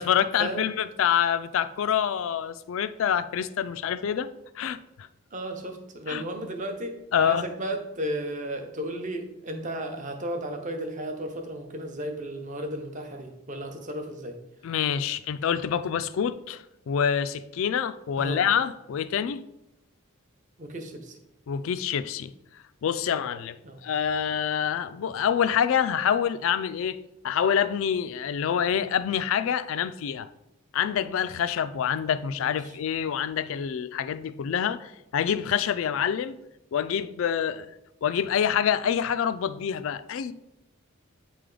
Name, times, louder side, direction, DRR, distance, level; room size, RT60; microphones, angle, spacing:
voice 1, 0.0-4.3 4.6-5.1 6.1-6.2 7.1-7.4 14.6-19.4 21.5-22.3 22.8-23.6 23.8-27.0 27.2-30.3 30.7-36.3 36.7-37.7 38.0-40.3, left 8 dB, 65° left, 0.3 m, -26 dB
voice 2, 5.3-14.4 18.2-18.4 20.6-21.2 23.6-23.8 32.3-32.7, right 1 dB, 35° right, 0.7 m, -34 dB
8.4 x 3.3 x 3.8 m
head